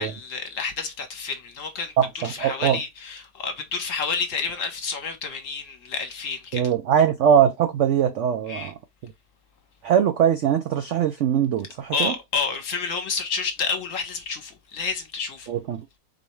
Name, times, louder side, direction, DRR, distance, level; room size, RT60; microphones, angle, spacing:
voice 1, 0.0-6.6 8.5-8.7 11.9-15.5, left 5 dB, 55° left, 1.1 m, -29 dB
voice 2, 2.0-2.8 6.5-8.7 9.0-9.1 9.8-12.1 15.5-16.0, right 9 dB, 75° right, 0.6 m, -21 dB
4.1 x 3.3 x 3.0 m
omnidirectional pair, 1.8 m